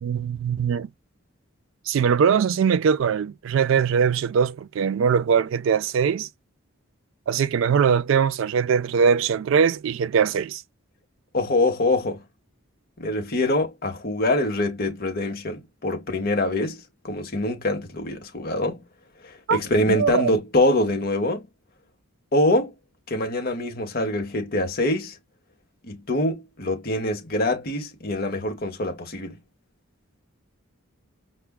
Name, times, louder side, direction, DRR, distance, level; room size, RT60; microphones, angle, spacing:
voice 1, 0.0-0.9 1.9-6.3 7.3-10.6 19.5-19.6 19.9-20.3, right 7 dB, 65° right, 0.3 m, -21 dB
voice 2, 11.3-12.2 13.0-18.8 19.5-21.5 22.3-22.7 23.1-25.1 25.9-29.4, left 1 dB, 45° left, 0.9 m, -24 dB
4.7 x 2.1 x 2.2 m
head